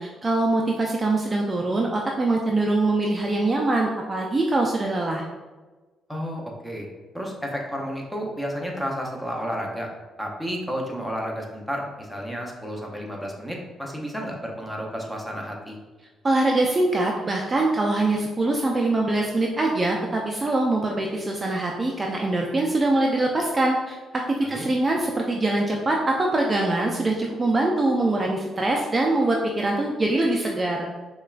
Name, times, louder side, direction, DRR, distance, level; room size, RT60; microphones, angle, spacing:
voice 1, 0.0-5.2 16.2-30.9, right 2 dB, 25° right, 0 dB, 0.4 m, -23 dB
voice 2, 6.1-6.9 7.1-9.9 10.2-15.8 24.4-24.7, equal, ahead, -1 dB, 0.7 m, -31 dB
5.3 x 2.2 x 2.4 m, 1.3 s
cardioid pair, 90°, 0 cm